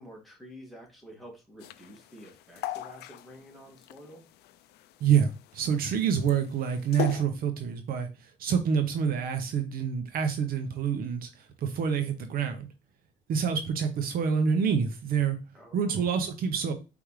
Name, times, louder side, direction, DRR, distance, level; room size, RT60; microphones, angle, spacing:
voice 1, 0.0-4.3 15.5-16.1, equal, ahead, 2.0 m, -49 dB
sound 1, 1.6-7.2, left 13 dB, 75° left, 0.4 m, -38 dB
voice 2, 5.0-12.7 13.3-15.4 15.7-16.7, right 7 dB, 60° right, 0.7 m, -27 dB
4.7 x 3.5 x 3.1 m
cardioid pair, 110°, 17 cm